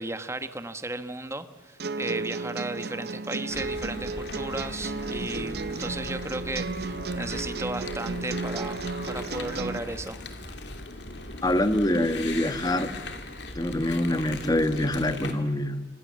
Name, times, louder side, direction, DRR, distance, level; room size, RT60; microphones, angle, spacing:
voice 1, 0.0-8.8 9.1-10.2, right 2 dB, 15° right, 11 dB, 1.2 m, -35 dB
sound 1, 1.8-9.8, right 3 dB, 60° right, 0.8 m, -33 dB
sound 2, 3.5-15.3, left 2 dB, 65° left, 2.7 m, -39 dB
voice 2, 11.4-12.9 13.5-15.9, left 1 dB, 20° left, 10 dB, 1.5 m, -25 dB
27.0 x 26.0 x 7.6 m, 1.3 s
head